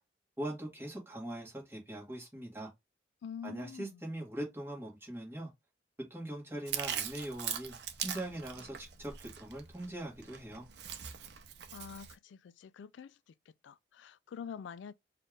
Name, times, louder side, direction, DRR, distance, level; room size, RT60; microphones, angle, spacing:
voice 1, 0.4-2.7 3.4-5.5 6.1-7.7 8.0-10.7, right 1 dB, 10° right, 1.5 m, -41 dB
voice 2, 3.2-4.0 11.7-13.3 13.6-14.9, left 7 dB, 90° left, 0.3 m, -46 dB
Chewing mastication, 6.7-12.1, right 9 dB, 70° right, 0.6 m, -41 dB
4.3 x 2.5 x 3.2 m
head